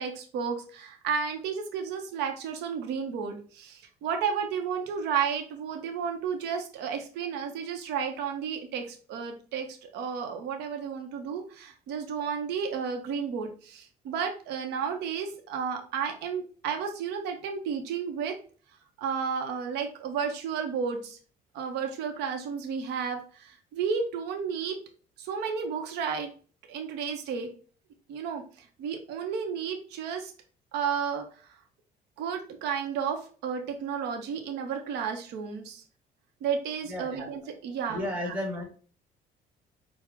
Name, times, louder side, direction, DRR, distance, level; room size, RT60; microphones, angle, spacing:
voice 1, 0.0-18.4 19.0-21.2 21.5-24.8 25.2-26.3 26.7-27.5 28.1-30.3 30.7-31.3 32.2-35.8 36.4-38.3, right 6 dB, 85° right, 4 dB, 0.7 m, -32 dB
voice 2, 36.8-37.3 37.9-38.6, left 1 dB, 10° right, 0 dB, 1.5 m, -33 dB
4.7 x 2.0 x 3.6 m, 0.41 s
cardioid pair, 110°, 17 cm